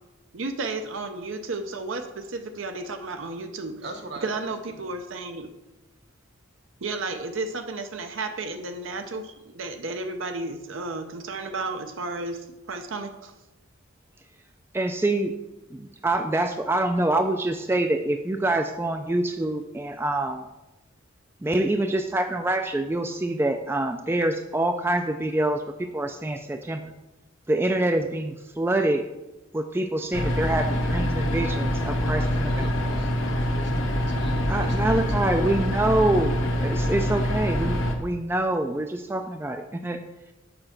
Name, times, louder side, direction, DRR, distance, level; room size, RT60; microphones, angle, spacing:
voice 1, 0.3-3.7 4.2-5.5 6.8-13.3, right 3 dB, 75° right, 6 dB, 0.7 m, -33 dB
voice 2, 3.8-4.9 32.2-35.5, right 1 dB, 55° right, 5 dB, 1.2 m, -41 dB
voice 3, 14.7-15.3 15.7-20.4 21.4-26.8 27.5-29.0 29.5-32.7 34.5-40.0, right 1 dB, 10° right, 6 dB, 0.3 m, -26 dB
sound 1, 30.1-37.9, equal, 70° left, 1.0 m, -25 dB
6.7 x 5.3 x 5.8 m, 1.0 s
head